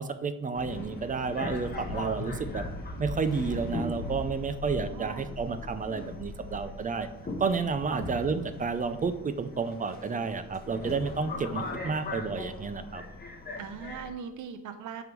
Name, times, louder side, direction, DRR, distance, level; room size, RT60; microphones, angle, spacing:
voice 1, 0.0-2.6 3.0-7.1 7.4-13.0, right 5 dB, 20° right, 10 dB, 0.5 m, -31 dB
Subway metro underground, 0.5-14.1, left 2 dB, 25° left, 1.2 m, -39 dB
sound 1, 2.1-4.4, left 4 dB, 60° left, 1.1 m, -45 dB
voice 2, 4.9-5.3 7.9-8.2 13.6-15.0, right 7 dB, 55° right, 7 dB, 0.7 m, -40 dB
9.4 x 3.6 x 5.9 m, 0.89 s
cardioid pair, 155°, 37 cm